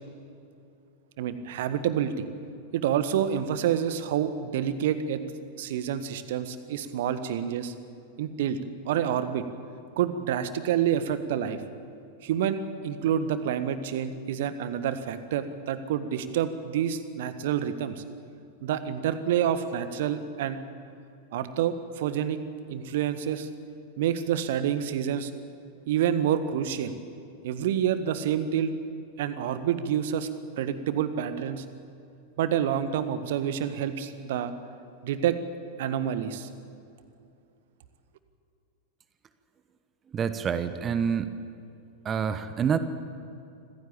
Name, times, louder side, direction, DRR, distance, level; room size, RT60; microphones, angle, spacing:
voice 1, 1.2-2.3 2.7-5.2 5.6-7.7 8.2-8.6 8.8-9.4 10.0-11.6 12.2-12.6 12.8-18.0 18.6-20.6 21.3-22.4 22.7-23.5 24.0-25.3 25.9-26.9 27.4-28.7 29.2-30.3 30.6-31.6 32.4-34.5 35.0-35.3 35.8-36.5, right 9 dB, 55° right, 12 dB, 1.5 m, -28 dB
voice 2, 40.1-41.3 42.0-42.8, right 7 dB, 25° right, 12 dB, 1.1 m, -27 dB
26.5 x 15.5 x 8.8 m, 2.6 s
figure-of-eight pair, 90°, 0 cm